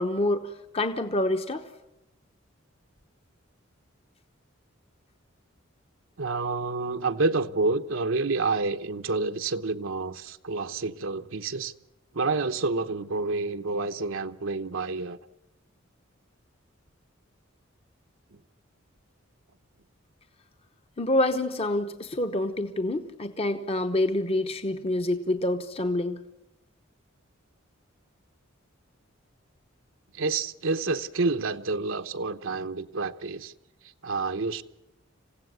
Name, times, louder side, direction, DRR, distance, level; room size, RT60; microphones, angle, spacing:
voice 1, 0.0-1.7 21.0-26.2, left 1 dB, 30° left, 1.0 m, -27 dB
voice 2, 6.2-11.7 12.1-15.2 30.1-33.5 33.8-34.6, right 3 dB, 75° right, 0.9 m, -28 dB
27.0 x 16.0 x 9.5 m
head